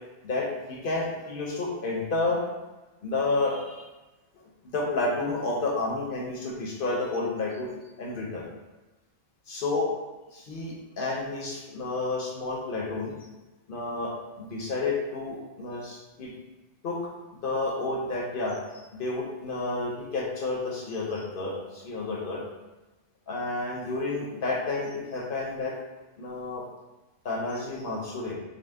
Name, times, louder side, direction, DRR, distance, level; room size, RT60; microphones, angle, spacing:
voice 1, 0.2-2.4 3.0-3.9 4.7-7.7 8.0-8.5 9.5-9.9 10.3-13.1 13.7-16.3 16.8-17.0 17.4-18.6 19.0-22.4 23.3-25.7 26.2-26.6 27.2-28.3, left 3 dB, 55° left, -2 dB, 0.8 m, -30 dB
3.8 x 2.0 x 3.4 m, 1.1 s
omnidirectional pair, 1.3 m